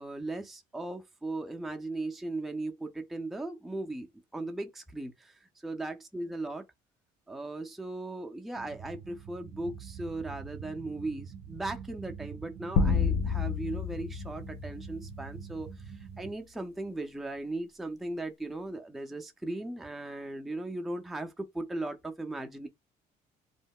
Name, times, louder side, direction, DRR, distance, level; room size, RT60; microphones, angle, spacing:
voice 1, 0.0-6.6 7.3-22.7, right 2 dB, ahead, 0.4 m, -38 dB
sound 1, 8.5-16.3, right 7 dB, 80° right, 0.4 m, -45 dB
sound 2, 12.8-15.3, left 5 dB, 75° left, 0.5 m, -29 dB
2.2 x 2.0 x 3.5 m
cardioid pair, 110°, 17 cm